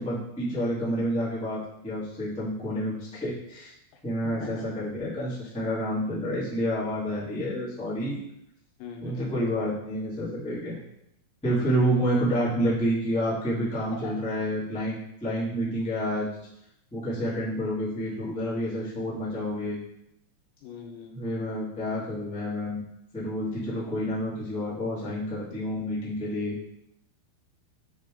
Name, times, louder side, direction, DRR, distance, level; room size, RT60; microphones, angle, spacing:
voice 1, 0.0-3.7 4.0-8.2 9.0-10.8 11.4-14.9 15.2-16.3 16.9-19.8 21.1-22.8 23.1-26.6, equal, 5° left, -9 dB, 0.5 m, -29 dB
voice 2, 3.9-4.7 8.8-9.3 11.9-12.2 13.9-14.2 14.7-14.8 20.6-21.1 23.7-23.9, left 5 dB, 85° left, 2 dB, 3.3 m, -42 dB
9.0 x 3.6 x 3.8 m, 0.78 s
omnidirectional pair, 5.3 m